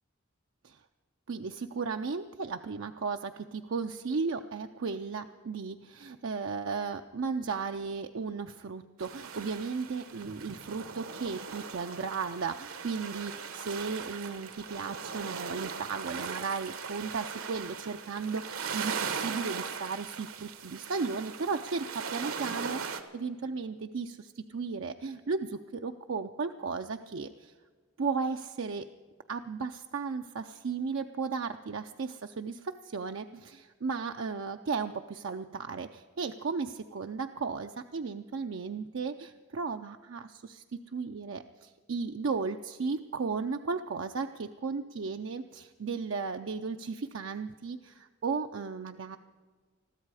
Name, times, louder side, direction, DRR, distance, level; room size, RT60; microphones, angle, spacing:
voice 1, 1.3-27.5 28.0-28.9 29.3-49.2, right 4 dB, 60° right, 6 dB, 0.5 m, -35 dB
sound 1, 9.0-23.0, right 6 dB, 80° right, 1.2 m, -39 dB
21.0 x 14.0 x 4.8 m, 1.5 s
head